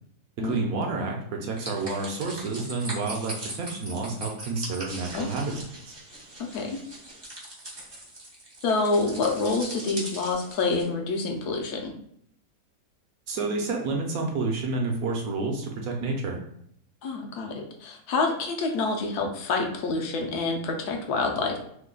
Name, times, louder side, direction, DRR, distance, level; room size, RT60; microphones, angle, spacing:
voice 1, 0.4-5.5 5.9-6.0 13.3-16.4, right 3 dB, 70° right, 1 dB, 1.0 m, -29 dB
sound 1, 1.6-10.8, right 1 dB, 40° right, 0.3 m, -40 dB
voice 2, 6.4-6.8 8.6-11.9 17.0-21.6, left 3 dB, 75° left, 3 dB, 1.1 m, -27 dB
3.2 x 2.2 x 3.6 m, 0.69 s
omnidirectional pair, 1.8 m